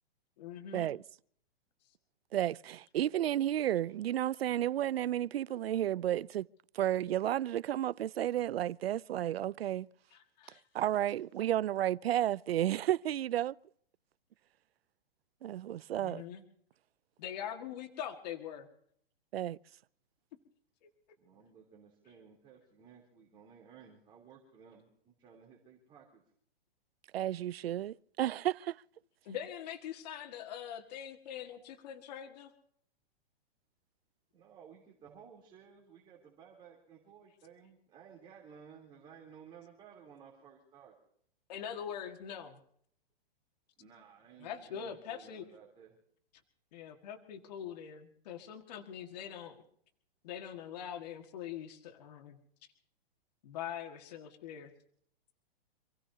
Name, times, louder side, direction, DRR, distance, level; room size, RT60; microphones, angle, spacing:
voice 1, 0.4-0.9 10.1-10.6 16.0-16.4 17.2-18.7 20.8-20.9 29.2-32.5 41.5-42.6 44.4-45.4 46.7-49.6 50.2-52.4 53.4-54.7, left 9 dB, 45° left, 1.9 m, -43 dB
voice 2, 2.3-6.5 6.7-9.9 10.7-13.6 15.4-16.2 19.3-19.6 27.1-28.8, right 12 dB, 90° right, 0.6 m, -32 dB
voice 3, 21.2-26.2 34.3-41.0 43.8-45.9, right 7 dB, 15° right, 3.4 m, -56 dB
27.5 x 16.0 x 2.8 m
hypercardioid pair, 165°, 29 cm